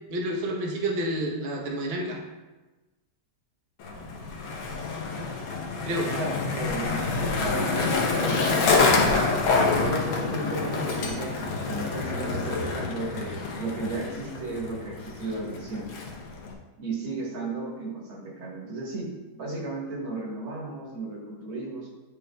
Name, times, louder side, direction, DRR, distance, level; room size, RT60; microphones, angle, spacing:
voice 1, 0.1-2.2 5.8-6.2, right 1 dB, 50° right, -1 dB, 0.7 m, -29 dB
Skateboard, 3.8-16.5, left 3 dB, 75° left, 1.7 m, -27 dB
voice 2, 6.2-9.0 9.6-11.4 11.7-15.9 16.8-19.1 19.4-21.9, right 2 dB, 75° right, -3 dB, 2.3 m, -34 dB
9.9 x 5.0 x 2.3 m, 1.2 s
omnidirectional pair, 2.3 m